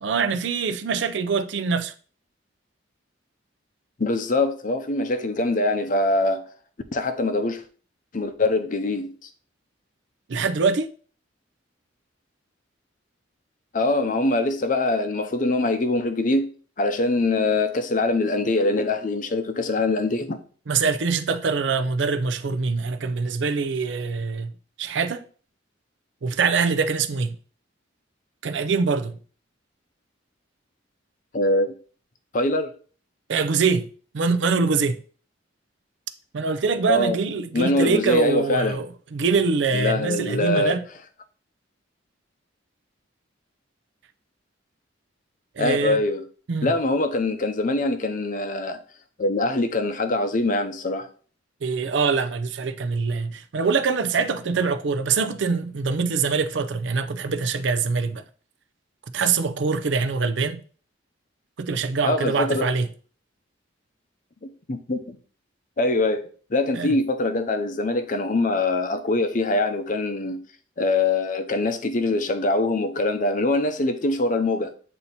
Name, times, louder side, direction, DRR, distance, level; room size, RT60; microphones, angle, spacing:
voice 1, 0.0-1.9 10.3-10.9 20.7-24.5 24.8-25.2 26.2-27.3 28.4-29.2 33.3-33.9 34.1-35.0 36.3-40.8 45.6-46.0 46.5-46.7 51.6-58.2 59.1-60.6 61.6-62.9 66.7-66.9, right 5 dB, 65° right, 0.5 m, -24 dB
voice 2, 4.0-6.4 6.9-7.6 8.1-9.1 13.7-16.5 16.8-20.4 31.3-31.7 32.3-32.7 36.9-37.2 37.5-38.8 39.7-40.8 45.6-46.2 46.6-48.8 49.2-51.1 62.0-62.7 64.7-65.2 65.8-70.4 70.8-74.7, left 2 dB, 45° left, 0.6 m, -23 dB
8.0 x 2.8 x 4.1 m
head